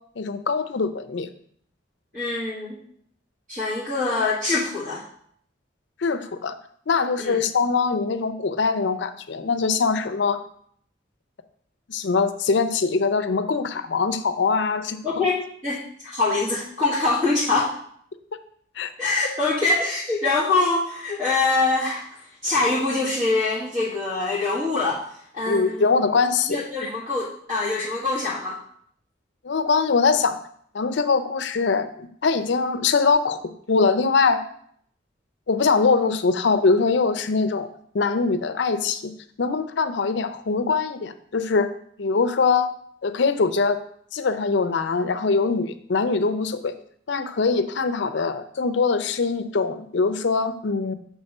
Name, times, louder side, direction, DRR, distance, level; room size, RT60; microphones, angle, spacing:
voice 1, 0.2-1.3 6.0-6.5 6.9-10.4 11.9-15.3 18.8-18.9 25.5-26.6 29.4-30.4 30.7-33.4 33.7-34.4 35.5-37.7 37.9-39.1 39.4-41.7 42.0-42.7 43.0-43.8 44.1-46.8 47.1-50.9, left 4 dB, 70° left, 11 dB, 0.5 m, -22 dB
voice 2, 2.1-2.8 3.5-5.0 7.2-7.4 15.0-17.8 19.0-25.0 25.3-25.9 26.5-28.6, left 3 dB, 40° right, -8 dB, 1.8 m, -24 dB
7.2 x 3.6 x 5.4 m, 0.64 s
head